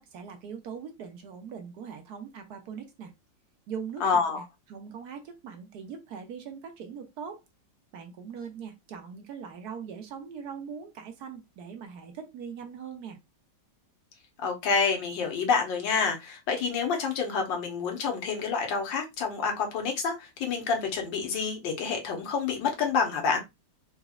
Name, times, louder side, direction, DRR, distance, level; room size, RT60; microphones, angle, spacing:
voice 1, 0.0-3.1 3.7-4.4 4.7-7.4 7.9-13.2, right 6 dB, 70° right, 1.1 m, -41 dB
voice 2, 4.0-4.4 14.4-23.4, left 5 dB, 85° left, 1.7 m, -28 dB
4.0 x 2.8 x 2.3 m
omnidirectional pair, 2.0 m